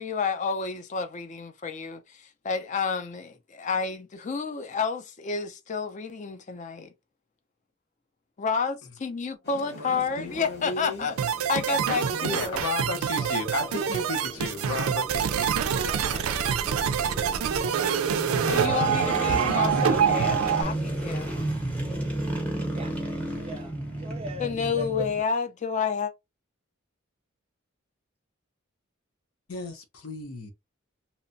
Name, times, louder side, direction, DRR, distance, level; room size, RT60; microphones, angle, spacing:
voice 1, 0.0-6.9 8.4-11.1 11.5-12.6 18.5-21.3 24.4-26.1, left 5 dB, 35° left, 0.4 m, -30 dB
sound 1, 9.4-16.4, left 2 dB, 50° left, 0.8 m, -50 dB
voice 2, 9.7-11.1 12.1-15.6 15.8-15.9 16.4-16.5 16.8-16.9 29.5-30.5, left 3 dB, 85° left, 0.7 m, -34 dB
sound 2, 10.0-25.2, right 1 dB, 5° left, 0.8 m, -34 dB
sound 3, 11.2-20.6, right 8 dB, 90° right, 0.4 m, -26 dB
voice 3, 15.9-16.3 16.7-19.3 20.2-20.7 22.7-22.9 23.4-25.1, right 1 dB, 30° right, 0.5 m, -42 dB
2.9 x 2.1 x 2.6 m
head